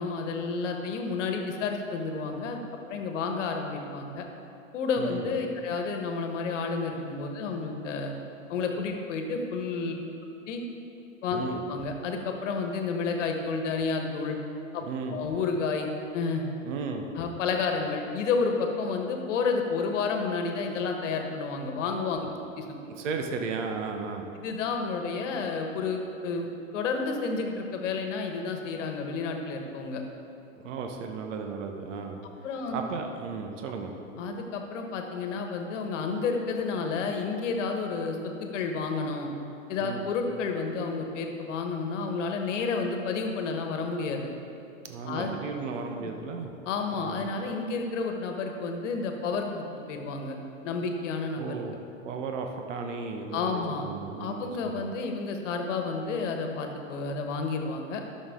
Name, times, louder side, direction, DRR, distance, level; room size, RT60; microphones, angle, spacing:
voice 1, 0.0-4.2 4.7-8.1 8.5-9.9 10.5-10.6 11.2-11.4 11.7-14.4 14.7-14.8 15.1-15.9 16.1-16.4 17.1-22.2 22.6-22.7 24.4-26.5 26.7-30.0 32.4-32.8 34.2-39.3 39.7-44.3 45.1-45.3 46.0-46.1 46.7-50.4 50.6-51.6 53.3-53.8 54.2-58.0, left 4 dB, 65° left, 4 dB, 1.3 m, -30 dB
voice 2, 5.0-5.3 11.3-11.6 14.8-15.2 16.6-17.0 22.9-24.3 30.6-32.2 32.7-34.0 39.8-40.1 44.9-46.5 47.0-47.2 51.4-51.8 52.0-54.8, right 4 dB, 65° right, 4 dB, 1.0 m, -35 dB
12.0 x 6.4 x 3.7 m, 2.8 s
hypercardioid pair, 115°, 40 cm